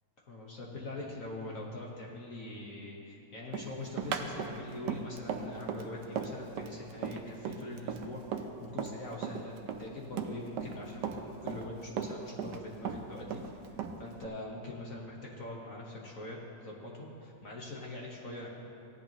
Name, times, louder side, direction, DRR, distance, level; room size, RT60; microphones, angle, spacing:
voice 1, 0.3-13.4 14.0-16.4 16.6-18.5, left 2 dB, 50° left, -3 dB, 1.5 m, -43 dB
Run, 3.5-9.0 9.2-10.8 11.0-12.6 12.9-14.3, right 7 dB, 75° right, 1.3 m, -36 dB
16.5 x 10.5 x 3.0 m, 2.7 s
omnidirectional pair, 2.0 m